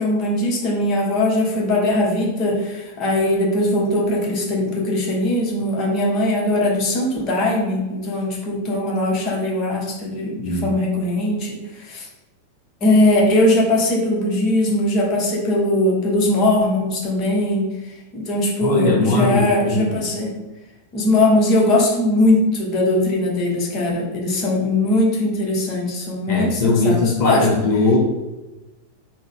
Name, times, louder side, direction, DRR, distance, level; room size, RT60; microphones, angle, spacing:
voice 1, 0.0-12.1 12.8-17.7 18.1-20.3 20.9-27.5, left 1 dB, 35° left, -2 dB, 1.1 m, -20 dB
voice 2, 10.4-10.8 18.6-19.9 26.3-28.0, left 3 dB, 50° left, -4 dB, 0.7 m, -20 dB
3.8 x 2.2 x 4.0 m, 1.1 s
figure-of-eight pair, 90°, 0 cm